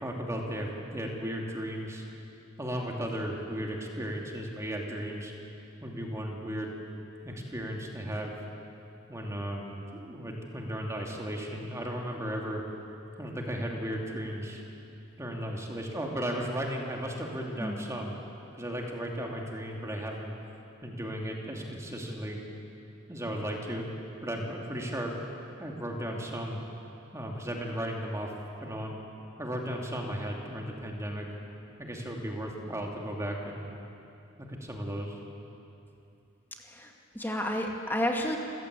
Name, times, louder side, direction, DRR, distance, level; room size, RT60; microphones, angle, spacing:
voice 1, 0.0-2.0 2.6-5.3 5.8-6.7 7.2-8.3 9.1-12.6 13.2-14.6 15.2-18.1 18.5-20.3 20.8-22.4 23.1-23.9 24.2-25.2 25.6-26.6 27.1-28.3 28.6-29.0 29.4-31.3 31.8-33.7 34.4-35.2, equal, 15° right, 0 dB, 2.8 m, -35 dB
voice 2, 36.6-38.4, left 1 dB, 10° left, 1 dB, 2.1 m, -31 dB
28.5 x 16.0 x 8.4 m, 2.8 s
head